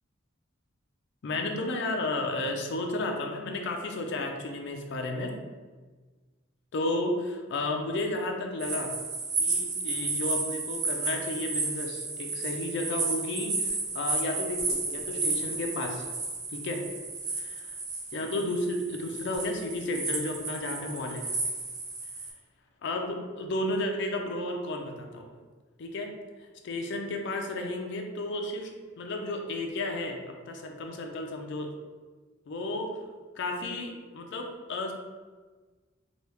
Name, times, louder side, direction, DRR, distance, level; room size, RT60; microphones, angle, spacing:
voice 1, 1.2-5.3 6.7-8.9 9.4-16.1 16.5-16.8 17.4-17.7 18.1-21.3 22.8-25.3 25.8-26.1 26.6-28.7 29.0-30.2 30.5-31.7 32.5-32.9 33.4-34.9, left 2 dB, 65° left, 3 dB, 0.4 m, -32 dB
sound 1, 8.6-22.3, right 3 dB, 55° right, 0.6 m, -32 dB
3.1 x 2.2 x 3.2 m, 1.4 s
head